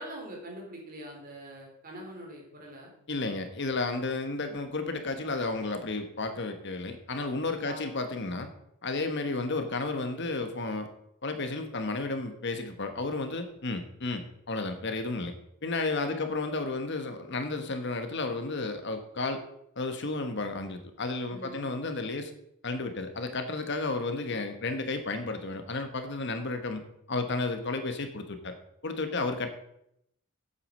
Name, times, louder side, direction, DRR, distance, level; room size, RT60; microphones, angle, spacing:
voice 1, 0.0-2.9 7.6-7.9 16.0-16.3 21.3-21.7 29.1-29.5, right 1 dB, 40° right, -1 dB, 3.7 m, -44 dB
voice 2, 3.1-8.5 8.8-10.9 11.2-15.4 15.6-19.4 19.8-22.3 22.6-26.8 27.1-28.5 28.8-29.5, left 3 dB, 55° left, 7 dB, 1.2 m, -32 dB
8.5 x 8.4 x 6.5 m, 0.76 s
head